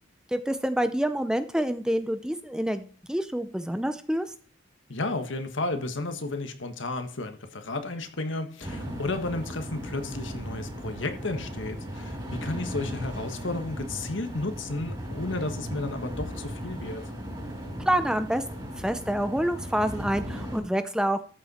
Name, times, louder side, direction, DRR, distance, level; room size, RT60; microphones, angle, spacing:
voice 1, 0.3-4.3 17.9-21.3, right 1 dB, 5° right, 0.5 m, -27 dB
voice 2, 4.9-17.1, left 2 dB, 70° left, 1.4 m, -33 dB
sound 1, 8.6-20.6, equal, 20° right, 5.2 m, -37 dB
13.5 x 7.4 x 4.2 m
head